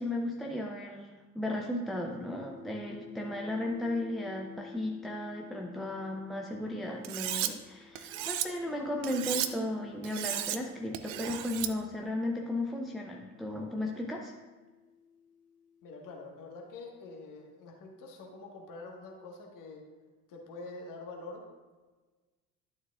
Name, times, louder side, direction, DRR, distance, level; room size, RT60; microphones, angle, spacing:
voice 1, 0.0-14.3, left 1 dB, ahead, 0 dB, 0.6 m, -35 dB
sound 1, 1.7-12.0 12.9-16.7, left 7 dB, 85° left, 1.2 m, -53 dB
Cutlery silverware, 7.0-7.5 8.0-8.5 9.0-9.5 10.0-10.6 10.9-11.7, right 13 dB, 50° right, 0.7 m, -34 dB
voice 2, 15.8-19.8 20.3-21.4, left 3 dB, 45° left, 0 dB, 1.7 m, -46 dB
11.5 x 7.0 x 2.5 m, 1.3 s
figure-of-eight pair, 60°, 46 cm